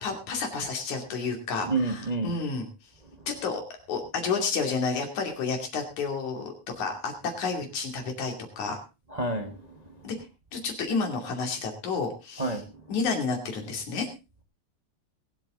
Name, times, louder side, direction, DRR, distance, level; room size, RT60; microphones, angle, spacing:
voice 1, 0.0-2.7 3.3-3.6 3.9-8.8 10.0-10.2 10.5-12.6 12.9-14.1, left 4 dB, 80° left, 4.0 m, -30 dB
voice 2, 1.6-2.3 9.1-9.5 12.4-12.7, right 2 dB, 40° right, 0.5 m, -28 dB
21.5 x 8.3 x 3.8 m
omnidirectional pair, 3.3 m